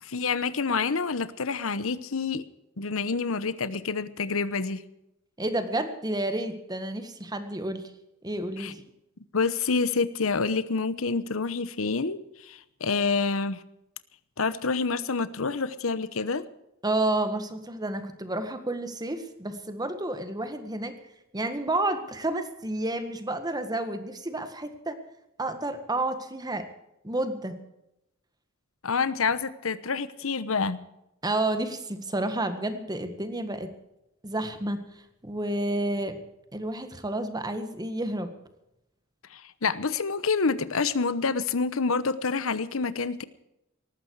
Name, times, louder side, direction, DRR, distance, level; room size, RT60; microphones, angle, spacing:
voice 1, 0.0-2.4 2.8-4.8 8.6-8.7 9.3-13.6 14.4-16.4 28.8-30.8 39.3-43.2, left 4 dB, 85° left, 15 dB, 0.9 m, -27 dB
voice 2, 5.4-7.9 8.2-8.8 16.8-21.0 21.3-25.0 25.4-26.7 27.0-27.6 31.2-33.7 34.2-36.2 36.5-38.3, right 1 dB, 20° right, 9 dB, 1.7 m, -30 dB
19.0 x 14.5 x 4.8 m, 0.86 s
head